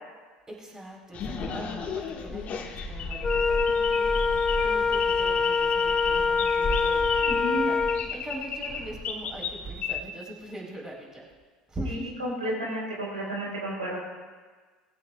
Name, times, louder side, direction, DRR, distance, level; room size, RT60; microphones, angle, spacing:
voice 1, 0.5-11.3 11.7-12.1, right 1 dB, 15° right, -2 dB, 4.5 m, -41 dB
sound 1, 1.1-10.0, left 4 dB, 40° left, 1.8 m, -33 dB
Wind instrument woodwind instrument, 3.2-8.1, left 5 dB, 20° left, 0.4 m, -25 dB
voice 2, 7.3-7.9 11.9-14.0, right 1 dB, 85° right, -4 dB, 4.9 m, -32 dB
20.0 x 16.0 x 2.5 m, 1.4 s
figure-of-eight pair, 70°, 4 cm